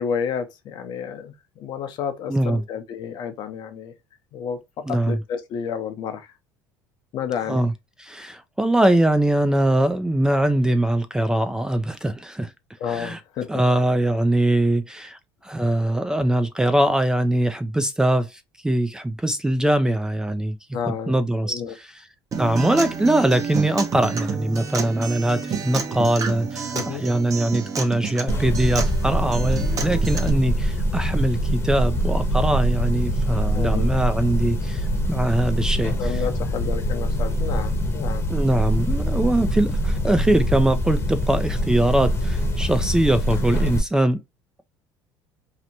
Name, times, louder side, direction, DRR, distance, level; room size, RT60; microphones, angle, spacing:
voice 1, 0.0-3.9 4.3-6.3 7.1-7.6 12.8-13.8 20.7-21.1 21.4-21.7 26.7-27.1 33.5-33.9 36.0-38.2, left 7 dB, 60° left, 0.7 m, -30 dB
voice 2, 2.3-2.6 4.9-5.2 7.5-7.7 8.0-12.5 12.9-13.2 13.5-20.6 21.1-21.9 22.4-36.2 38.3-44.2, right 1 dB, 10° right, 0.3 m, -22 dB
Acoustic guitar, 22.3-30.3, right 6 dB, 40° right, 0.8 m, -30 dB
sound 1, 28.3-43.8, equal, 30° left, 0.9 m, -24 dB
2.8 x 2.1 x 2.6 m
supercardioid pair, 90°, 9 cm